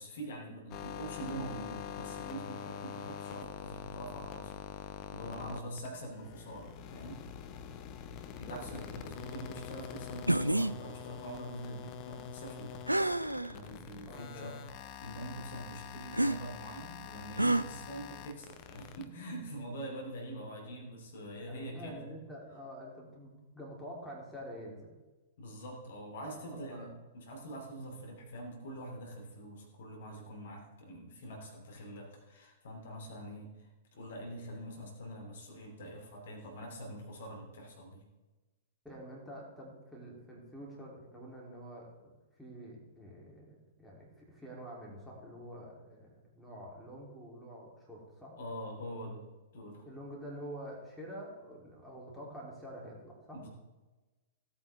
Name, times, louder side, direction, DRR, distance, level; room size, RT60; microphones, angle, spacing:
voice 1, 0.0-7.2 8.3-13.2 13.5-14.6 15.0-22.0 25.4-38.0 48.4-49.9 53.3-53.5, right 1 dB, 55° left, 1 dB, 2.8 m, -44 dB
sound 1, 0.7-19.0, left 9 dB, 35° left, 0.9 m, -45 dB
voice 2, 8.5-8.9 14.1-14.6 21.5-24.9 26.3-26.9 38.8-42.1 42.4-48.4 49.8-53.4, equal, ahead, -4 dB, 3.3 m, -47 dB
sound 2, 10.3-10.7 12.9-13.5 14.2-14.3 16.1-16.4 17.4-17.6, right 1 dB, 85° right, 0.4 m, -28 dB
16.5 x 8.6 x 3.6 m, 1.2 s
figure-of-eight pair, 105°, 0 cm